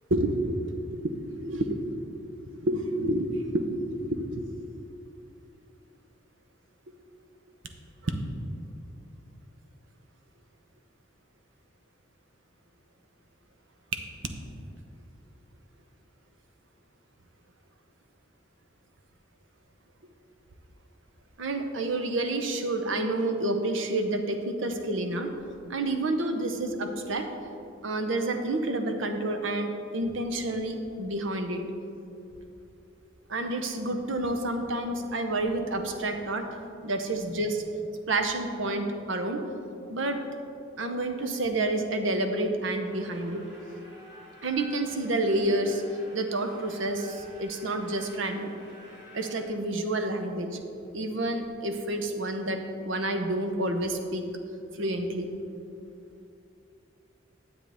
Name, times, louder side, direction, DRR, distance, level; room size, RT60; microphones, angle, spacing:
voice 1, 0.1-1.8 2.6-4.4 8.0-8.2 13.9-14.0 21.4-25.3 25.7-27.3 27.8-31.6 33.3-36.5 36.8-37.6 38.1-39.4 39.9-40.2 40.8-43.4 44.4-45.8 46.1-48.5 49.1-50.6 50.9-54.3 54.8-55.3, right 2 dB, 80° right, 6 dB, 0.8 m, -29 dB
sound 1, 42.8-49.5, left 1 dB, 20° right, 1.8 m, -50 dB
10.0 x 7.9 x 3.5 m, 2.7 s
head